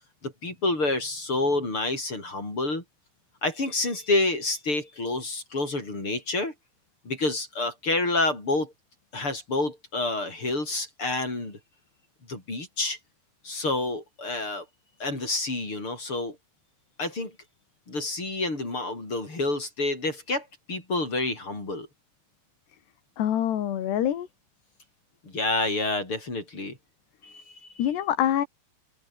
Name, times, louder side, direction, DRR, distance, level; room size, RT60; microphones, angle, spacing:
voice 1, 0.2-2.8 3.4-6.5 7.0-8.7 9.1-11.6 12.3-13.0 13.4-14.7 15.0-16.4 17.0-17.3 17.9-21.9 25.2-26.8 27.2-27.9, left 2 dB, 30° left, 7.7 m, -28 dB
voice 2, 23.2-24.3 27.8-28.5, left 10 dB, 70° left, 4.3 m, -25 dB
open air
omnidirectional pair, 5.2 m